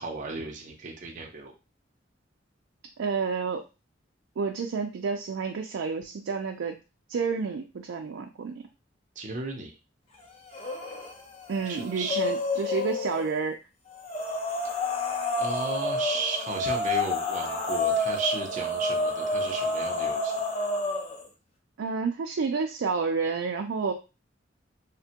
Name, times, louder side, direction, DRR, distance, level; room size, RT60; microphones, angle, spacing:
voice 1, 0.0-1.5 9.2-9.7 11.7-12.2 15.4-20.3, right 3 dB, 40° right, 1 dB, 0.6 m, -34 dB
voice 2, 3.0-3.6 4.4-6.8 7.1-8.5 11.5-13.6 21.8-23.9, right 5 dB, 85° right, 3 dB, 0.4 m, -30 dB
sound 1, 10.5-11.1 11.5-13.3 14.0-21.2, left 2 dB, 35° left, 0.6 m, -29 dB
3.3 x 2.1 x 2.8 m, 0.29 s
head